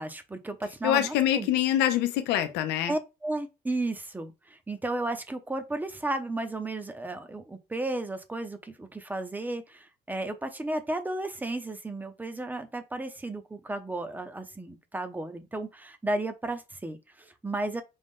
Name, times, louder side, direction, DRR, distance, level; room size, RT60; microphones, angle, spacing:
voice 1, 0.0-1.5 2.9-17.8, right 2 dB, 10° right, 0.7 m, -34 dB
voice 2, 0.8-2.9, left 12 dB, 90° left, 0.7 m, -25 dB
5.3 x 2.5 x 3.7 m
cardioid pair, 110°, 17 cm